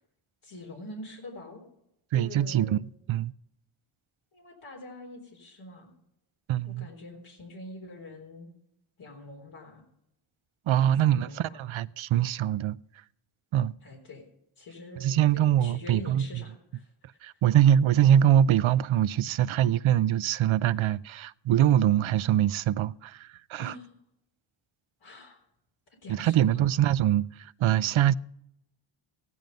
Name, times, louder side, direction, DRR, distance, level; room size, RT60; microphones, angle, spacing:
voice 1, 0.4-1.6 2.1-2.8 4.3-5.9 6.7-8.5 9.0-9.8 10.8-11.7 13.8-14.2 14.6-16.9 23.6-23.9 25.0-25.4 26.0-26.8, left 2 dB, 75° left, 3.8 m, -45 dB
voice 2, 2.1-2.8 3.1-3.3 6.5-6.9 10.7-12.8 13.5-13.7 15.0-16.4 17.2-23.7 26.1-28.1, right 11 dB, 70° right, 0.6 m, -23 dB
16.0 x 11.0 x 5.2 m
cardioid pair, 75°, 49 cm